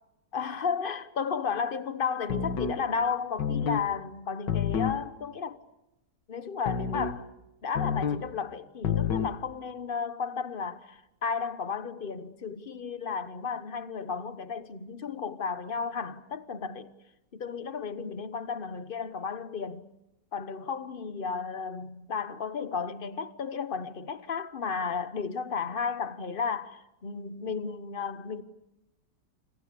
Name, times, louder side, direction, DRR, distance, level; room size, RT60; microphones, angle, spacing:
voice 1, 0.3-5.6 6.3-7.3 7.6-16.9 17.3-19.9 20.3-28.4, left 5 dB, 35° left, 1.0 m, -33 dB
sound 1, 2.3-2.8 3.4-3.9 4.5-5.0 6.7-7.2 7.8-8.3 8.8-9.4, left 7 dB, 85° left, 2.1 m, -29 dB
28.5 x 26.0 x 6.9 m
omnidirectional pair, 1.9 m